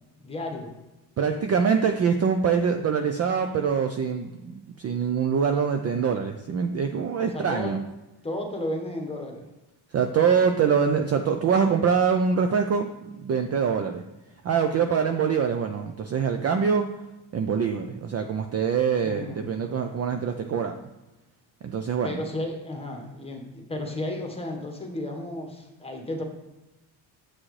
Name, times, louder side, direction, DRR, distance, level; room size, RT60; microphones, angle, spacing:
voice 1, 0.2-0.7 7.2-7.8 8.2-9.4 19.0-19.4 22.0-26.2, left 1 dB, 10° left, 2 dB, 1.2 m, -33 dB
voice 2, 1.2-4.3 4.8-7.8 9.9-12.9 13.2-14.0 14.4-16.9 17.3-20.8 21.6-22.2, right 6 dB, 35° right, 6 dB, 0.4 m, -24 dB
7.7 x 6.1 x 3.2 m, 1.0 s
cardioid pair, 125°, 48 cm